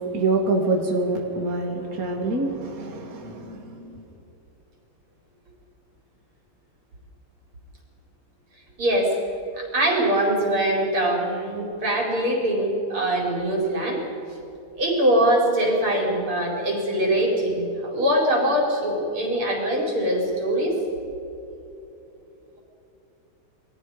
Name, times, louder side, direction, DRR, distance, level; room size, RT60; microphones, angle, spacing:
voice 1, 0.0-4.0, right 3 dB, 40° right, 1 dB, 2.6 m, -26 dB
voice 2, 8.8-9.1 9.5-14.0 14.8-20.8, right 1 dB, 85° right, -1 dB, 5.7 m, -23 dB
28.5 x 22.5 x 5.1 m, 3.0 s
omnidirectional pair, 2.3 m